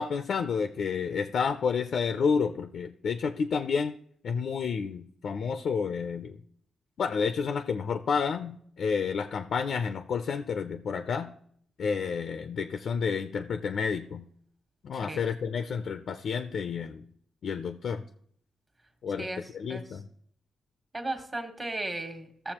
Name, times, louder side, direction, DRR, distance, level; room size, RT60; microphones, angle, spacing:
voice 1, 0.0-3.9 4.2-6.4 7.0-11.3 11.8-14.2 14.8-17.0 17.4-18.0 19.0-19.3 19.5-20.0, left 6 dB, 65° left, 9 dB, 0.4 m, -30 dB
voice 2, 14.9-15.2 19.2-19.4 19.7-20.0 20.9-22.5, right 2 dB, 30° right, 6 dB, 1.4 m, -36 dB
15.0 x 6.9 x 2.9 m, 0.64 s
cardioid pair, 100°, 0 cm